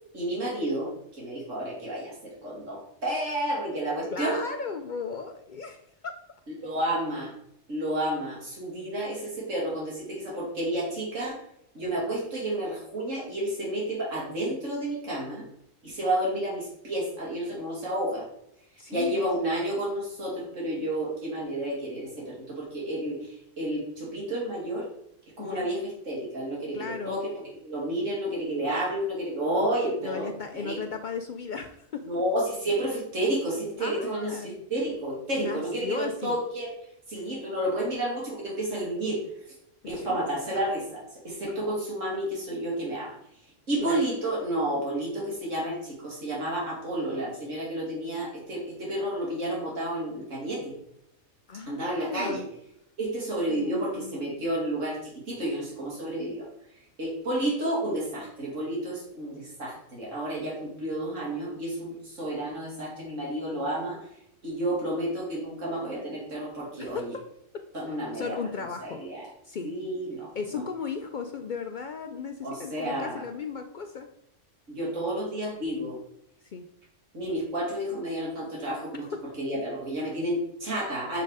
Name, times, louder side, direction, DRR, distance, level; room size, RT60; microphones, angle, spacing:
voice 1, 0.1-4.4 6.6-7.3 7.7-11.4 11.7-15.4 15.8-18.2 18.9-24.9 25.4-30.3 30.5-30.8 32.0-36.7 37.1-39.2 39.8-43.2 43.7-50.7 51.7-52.4 53.0-56.5 57.0-64.0 64.4-67.1 67.7-68.4 68.8-69.2 69.6-70.6 72.4-73.2 74.7-76.0 77.1-79.0 79.4-81.2, right 1 dB, 90° right, -5 dB, 2.8 m, -31 dB
voice 2, 4.1-6.2 18.8-19.2 25.4-25.7 26.7-27.2 30.0-32.2 33.8-34.5 35.4-36.4 39.9-40.6 43.8-44.1 51.5-52.5 53.5-54.1 66.8-67.2 67.9-69.7 70.3-74.1 76.5-76.7 79.0-79.1, left 5 dB, 60° left, 6 dB, 0.5 m, -36 dB
6.5 x 4.4 x 4.7 m, 0.75 s
omnidirectional pair, 1.3 m